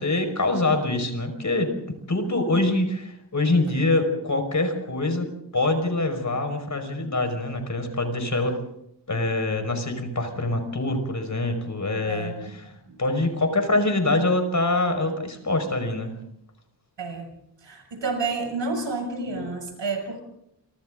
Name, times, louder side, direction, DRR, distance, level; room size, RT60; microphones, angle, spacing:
voice 1, 0.0-8.6 9.1-12.7 13.0-16.1, left 2 dB, 40° left, 6 dB, 5.4 m, -25 dB
voice 2, 12.1-12.5 12.9-13.0 17.0-17.3 17.6-20.2, right 3 dB, 80° right, 4 dB, 6.8 m, -30 dB
29.0 x 25.5 x 3.9 m, 0.76 s
wide cardioid pair, 95°, 43 cm